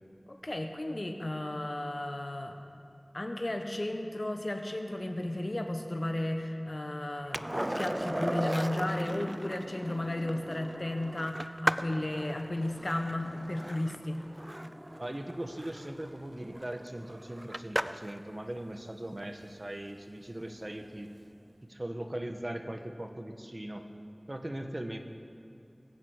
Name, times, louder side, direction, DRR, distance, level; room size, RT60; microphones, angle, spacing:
voice 1, 0.3-2.6 3.1-7.4 7.8-14.2, left 1 dB, 55° left, 5 dB, 1.3 m, -34 dB
Skateboard, 7.3-18.2 20.8-20.9, right 1 dB, 25° right, 0.4 m, -37 dB
voice 2, 15.0-21.1 21.6-23.9 24.3-25.0, right 1 dB, 45° right, 5 dB, 1.2 m, -39 dB
22.0 x 7.7 x 8.1 m, 2.6 s
wide cardioid pair, 45°, 0 cm